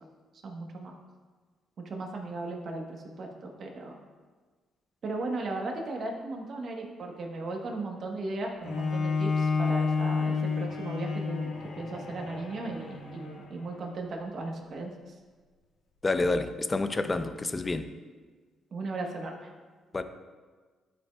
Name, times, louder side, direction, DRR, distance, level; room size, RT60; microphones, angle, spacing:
voice 1, 0.4-1.0 1.8-4.0 5.0-15.2 18.7-19.5, right 2 dB, 55° right, 1 dB, 1.1 m, -36 dB
Bowed string instrument, 8.6-13.9, left 4 dB, 65° left, 0.8 m, -30 dB
voice 2, 16.0-17.9 19.9-20.0, left 2 dB, 25° left, 9 dB, 0.5 m, -28 dB
11.5 x 5.2 x 2.3 m, 1.4 s
cardioid pair, 90°, 0 cm